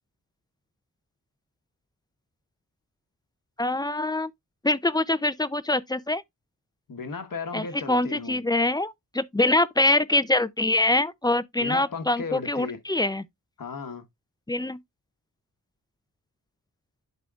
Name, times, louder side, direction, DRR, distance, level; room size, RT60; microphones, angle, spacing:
voice 1, 3.6-4.3 4.6-6.2 7.5-13.2 14.5-14.8, left 2 dB, 10° left, 0.4 m, -24 dB
voice 2, 6.9-8.4 11.6-12.8 13.6-14.0, left 5 dB, 60° left, 1.3 m, -35 dB
11.0 x 3.8 x 2.4 m
wide cardioid pair, 90°, 37 cm